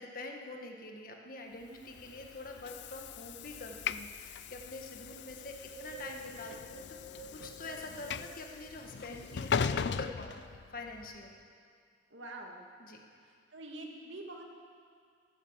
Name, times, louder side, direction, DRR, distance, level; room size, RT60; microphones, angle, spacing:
voice 1, 0.0-6.8 7.3-11.3 12.8-13.0, left 2 dB, 50° left, 2 dB, 1.6 m, -45 dB
Train / Sliding door, 1.8-11.1, left 6 dB, 65° left, 0.4 m, -39 dB
Wind, 5.2-8.8 9.4-10.6 11.1-11.2, right 2 dB, 30° right, 3.5 m, -51 dB
voice 2, 12.1-12.7 13.2-14.4, right 2 dB, 85° right, 1 dB, 2.2 m, -46 dB
15.0 x 12.0 x 7.4 m, 2.2 s
head